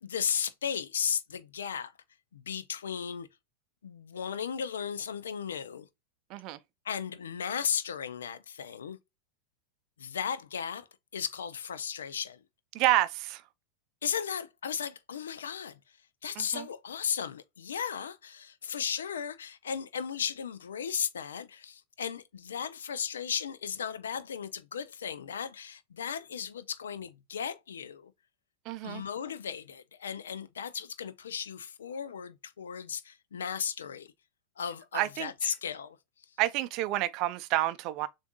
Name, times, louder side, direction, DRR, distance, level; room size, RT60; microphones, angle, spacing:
voice 1, 0.0-1.9 2.3-3.3 3.8-5.9 6.8-9.0 10.0-10.9 11.1-12.4 14.0-15.8 16.2-28.1 28.8-34.1 34.6-36.0, left 7 dB, 65° left, 0.5 m, -35 dB
voice 2, 12.7-13.4 16.4-16.7 28.7-29.0 34.9-35.5 36.4-38.1, right 15 dB, 40° right, 0.5 m, -29 dB
6.9 x 2.6 x 2.2 m
figure-of-eight pair, 90°, 0 cm